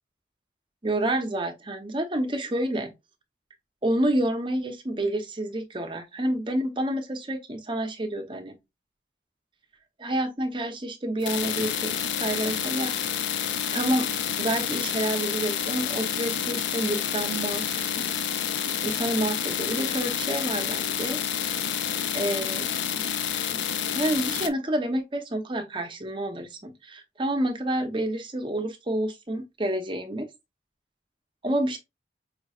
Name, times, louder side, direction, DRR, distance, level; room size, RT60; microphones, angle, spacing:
voice 1, 0.8-2.9 3.8-8.6 10.0-11.9 12.2-13.1 13.7-14.1 14.4-17.9 18.8-21.2 22.1-22.7 23.9-30.3 31.4-31.8, right 1 dB, 25° right, 0.7 m, -28 dB
sound 1, 11.2-24.5, left 8 dB, 90° left, 0.5 m, -29 dB
5.0 x 3.0 x 2.3 m
head